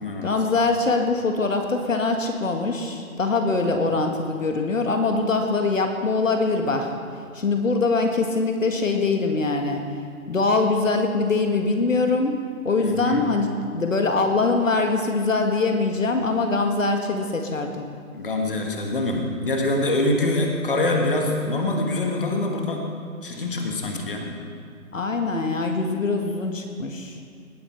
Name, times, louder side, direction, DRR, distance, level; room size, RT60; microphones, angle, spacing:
voice 1, 0.2-6.9 7.3-9.8 10.3-12.4 12.6-17.8 24.9-27.2, left 3 dB, 60° left, 4 dB, 1.6 m, -23 dB
voice 2, 12.8-13.2 18.1-22.8 23.2-24.3, left 2 dB, 40° left, 2 dB, 1.6 m, -24 dB
18.5 x 10.5 x 4.5 m, 2.2 s
hypercardioid pair, 175°, 43 cm